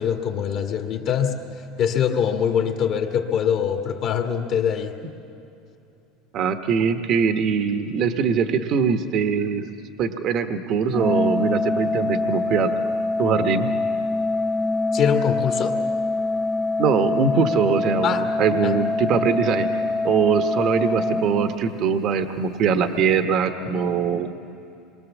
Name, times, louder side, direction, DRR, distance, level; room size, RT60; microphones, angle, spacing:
voice 1, 0.0-5.0 14.9-15.8 18.0-18.3 18.6-18.8, left 8 dB, 50° left, 3 dB, 1.9 m, -23 dB
voice 2, 6.3-12.7 13.2-13.7 16.8-24.4, right 6 dB, 45° right, 8 dB, 1.2 m, -22 dB
Organ, 10.9-22.0, left 2 dB, 15° left, 0.8 m, -24 dB
27.0 x 22.5 x 7.3 m, 2.7 s
supercardioid pair, 140°, 0 cm